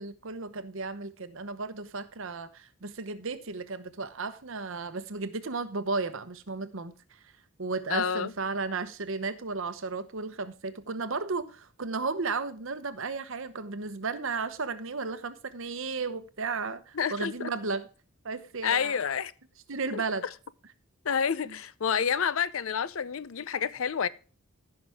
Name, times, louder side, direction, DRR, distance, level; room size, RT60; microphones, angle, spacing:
voice 1, 0.0-6.9 7.6-17.9 18.2-19.0 19.7-20.3 21.4-21.5, right 4 dB, 65° right, 1.0 m, -34 dB
voice 2, 7.9-8.3 17.0-17.5 18.6-19.3 19.9-20.0 21.0-24.1, left 7 dB, 70° left, 0.6 m, -29 dB
15.5 x 5.8 x 3.5 m
head